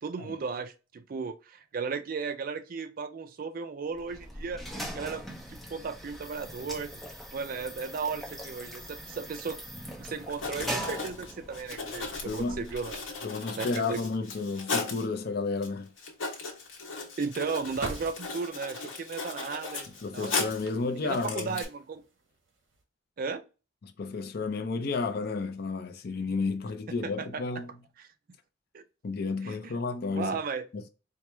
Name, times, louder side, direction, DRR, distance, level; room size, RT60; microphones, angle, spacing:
voice 1, 0.0-4.6 4.9-5.2 5.5-7.0 7.3-9.6 10.0-13.0 13.6-14.0 17.2-19.9 20.1-20.3 21.0-22.0 23.2-23.4 27.0-27.4 28.0-28.1 28.7-28.8 29.4-29.7 30.1-30.6, right 5 dB, 45° right, 0.4 m, -35 dB
sound 1, 3.9-13.2, equal, ahead, 0.6 m, -41 dB
Writing, 10.0-10.1 10.3-15.1 15.6-15.7 16.0-20.7 21.1-21.6, left 4 dB, 85° left, 1.1 m, -36 dB
sound 2, 11.7-22.8, right 3 dB, 75° right, 0.9 m, -49 dB
voice 2, 12.2-12.7 13.2-15.9 20.0-21.6 23.8-27.7 29.0-30.4 30.7-30.9, left 4 dB, 50° left, 0.5 m, -32 dB
4.5 x 2.0 x 3.2 m
head